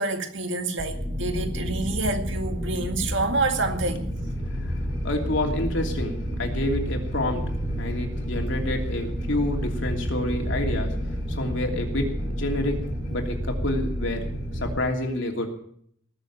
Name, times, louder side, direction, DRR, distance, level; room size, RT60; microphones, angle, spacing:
voice 1, 0.0-4.1, right 2 dB, 65° right, 2.0 m, -27 dB
sound 1, 0.8-14.8, equal, 25° right, 2.3 m, -30 dB
voice 2, 4.4-15.5, left 1 dB, 70° left, 3.0 m, -29 dB
19.5 x 7.2 x 8.7 m
head